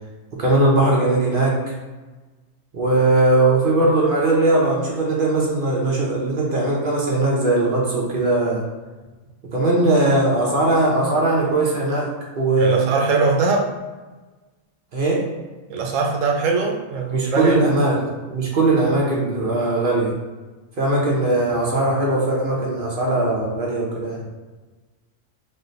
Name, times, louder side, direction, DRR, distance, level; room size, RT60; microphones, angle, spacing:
voice 1, 0.4-1.6 2.7-8.6 9.5-12.9 14.9-15.2 17.1-18.0 18.3-20.1 20.8-24.3, right 2 dB, 50° right, -3 dB, 0.8 m, -19 dB
voice 2, 12.6-13.7 15.7-17.5, right 4 dB, 80° right, 2 dB, 0.9 m, -21 dB
3.2 x 2.1 x 3.9 m, 1.3 s
omnidirectional pair, 1.4 m